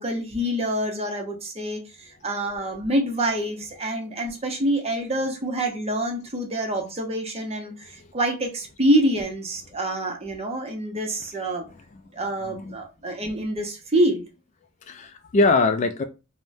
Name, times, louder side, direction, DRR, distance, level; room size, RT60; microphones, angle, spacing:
voice 1, 0.0-1.8 2.2-11.6 12.1-14.2, right 1 dB, 30° right, 0.7 m, -26 dB
voice 2, 12.4-12.8 14.9-16.0, left 3 dB, 35° left, 0.3 m, -23 dB
3.5 x 2.1 x 2.6 m
head